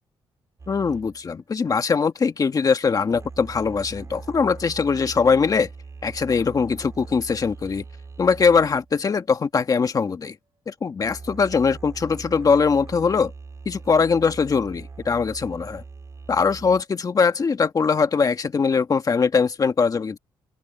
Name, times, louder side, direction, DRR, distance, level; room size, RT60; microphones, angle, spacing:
sound 1, 0.6-9.0 11.0-16.8, right 4 dB, 30° right, 3.4 m, -41 dB
voice 1, 0.7-5.7 6.0-7.8 8.2-10.3 10.7-13.3 13.6-15.8 16.3-20.2, left 5 dB, 35° left, 1.5 m, -21 dB
cardioid pair, 115°, 10 cm